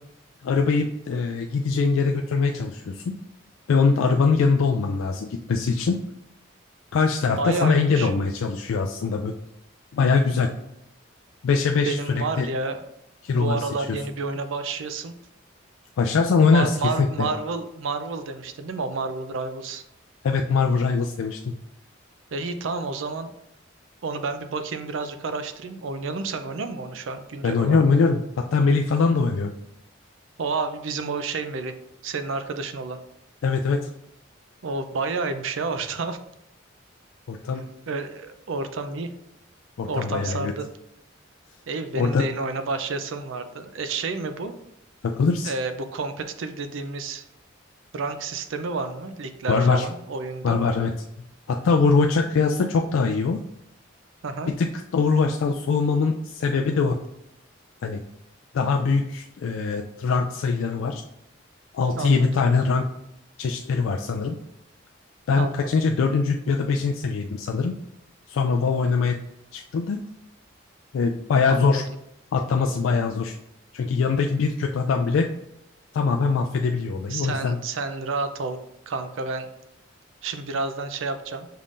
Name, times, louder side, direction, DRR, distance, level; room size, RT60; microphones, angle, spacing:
voice 1, 0.4-3.1 3.7-6.0 6.9-9.3 9.9-10.5 11.4-12.5 13.2-13.6 16.0-17.3 20.2-21.5 27.4-29.5 33.4-33.9 37.3-37.6 39.8-40.5 42.0-42.2 45.0-45.5 49.5-49.9 50.4-50.9 51.5-53.4 54.6-54.7 54.9-57.0 57.8-58.0 58.5-61.0 61.7-62.9 63.4-64.4 65.3-67.8 68.3-69.2 69.5-70.0 70.9-71.8 72.3-73.4 73.7-75.3 75.9-77.6, left 4 dB, 80° left, 3 dB, 0.3 m, -22 dB
voice 2, 7.4-8.1 11.8-12.8 13.4-15.1 16.5-19.8 22.3-23.3 24.0-27.8 30.4-31.7 32.0-33.0 34.6-36.2 37.9-39.1 39.9-40.7 41.7-44.5 45.4-47.2 47.9-50.6 54.2-54.5 62.0-62.4 65.4-65.8 71.5-71.8 77.1-78.6 78.9-79.5 80.2-81.5, right 3 dB, 75° right, 9 dB, 0.5 m, -30 dB
5.6 x 3.6 x 2.5 m, 0.82 s
head